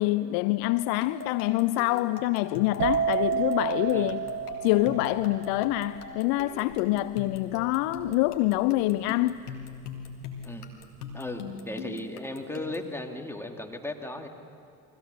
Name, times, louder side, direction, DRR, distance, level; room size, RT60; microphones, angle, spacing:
voice 1, 0.0-4.2 4.6-9.4, left 18 dB, 50° left, 0.6 m, -26 dB
sound 1, 0.6-12.9, left 5 dB, 75° left, 2.1 m, -41 dB
sound 2, 2.8-10.4 10.6-11.1, right 7 dB, 80° right, 0.8 m, -32 dB
voice 2, 11.1-14.3, left 2 dB, 5° left, 2.8 m, -36 dB
29.5 x 23.5 x 7.1 m
figure-of-eight pair, 55°, 45 cm